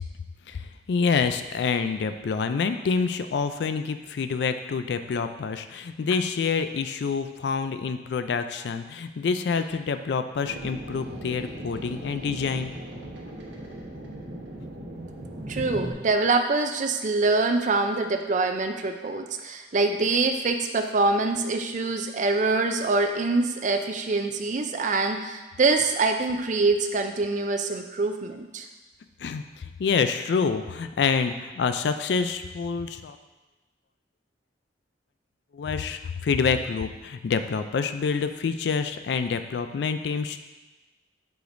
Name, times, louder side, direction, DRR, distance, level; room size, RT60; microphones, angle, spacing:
voice 1, 0.5-12.7 29.2-33.2 35.5-40.5, left 5 dB, 65° left, 9 dB, 0.3 m, -27 dB
sound 1, 10.4-15.9, right 1 dB, 85° right, 1.1 m, -38 dB
voice 2, 15.5-28.7, right 3 dB, 45° right, 6 dB, 0.5 m, -25 dB
7.8 x 5.0 x 2.6 m, 1.1 s
head